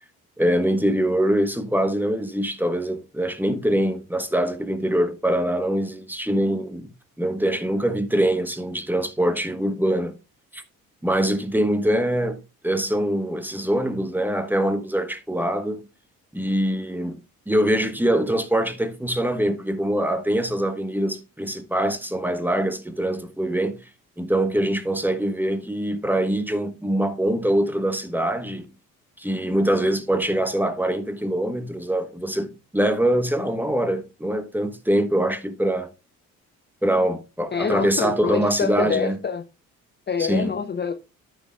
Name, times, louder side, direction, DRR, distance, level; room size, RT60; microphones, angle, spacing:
voice 1, 0.4-6.9 7.2-10.2 10.5-10.6 11.0-15.8 16.3-17.2 17.5-23.8 24.2-28.7 29.2-35.9 36.8-39.2 40.2-40.5, right 1 dB, 5° right, 1.2 m, -23 dB
voice 2, 37.5-39.4 40.1-40.9, left 6 dB, 25° left, 0.7 m, -26 dB
13.0 x 5.9 x 2.4 m
figure-of-eight pair, 45°, 43 cm